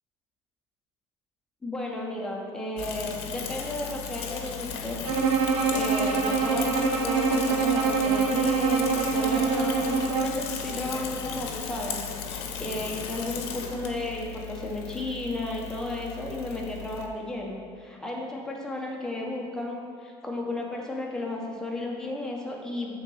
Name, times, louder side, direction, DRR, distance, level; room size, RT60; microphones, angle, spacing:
voice 1, 1.6-5.0 5.7-23.0, left 2 dB, 5° left, -2 dB, 1.0 m, -33 dB
Bicycle / Mechanisms, 2.8-17.1, left 7 dB, 70° left, 0.9 m, -36 dB
Bowed string instrument, 5.0-10.5, right 5 dB, 70° right, 0.8 m, -25 dB
7.1 x 3.9 x 6.3 m, 2.1 s
cardioid pair, 155°, 11 cm